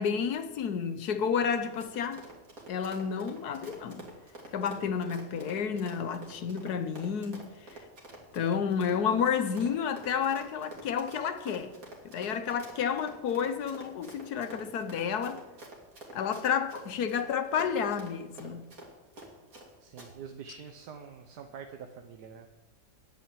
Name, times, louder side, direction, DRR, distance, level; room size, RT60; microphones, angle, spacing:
voice 1, 0.0-2.2 2.7-4.1 4.5-7.5 8.3-11.7 12.0-15.4 16.1-18.6, left 7 dB, 70° left, 1.4 m, -30 dB
Run, 1.6-19.7 20.0-20.1, right 2 dB, 55° right, 2.9 m, -48 dB
voice 2, 19.8-22.5, right 6 dB, 85° right, 1.5 m, -45 dB
9.9 x 8.8 x 9.1 m
omnidirectional pair, 1.7 m